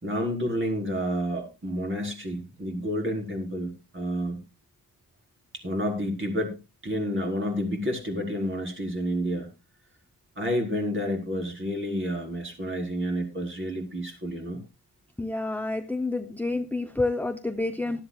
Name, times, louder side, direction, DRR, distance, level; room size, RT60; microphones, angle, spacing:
voice 1, 0.0-4.4 5.6-6.6 6.8-9.5 10.4-14.6, equal, 30° right, 1 dB, 4.5 m, -29 dB
voice 2, 15.2-18.0, left 2 dB, 5° left, 8 dB, 0.7 m, -29 dB
18.5 x 12.0 x 2.4 m, 0.27 s
wide cardioid pair, 135°, 38 cm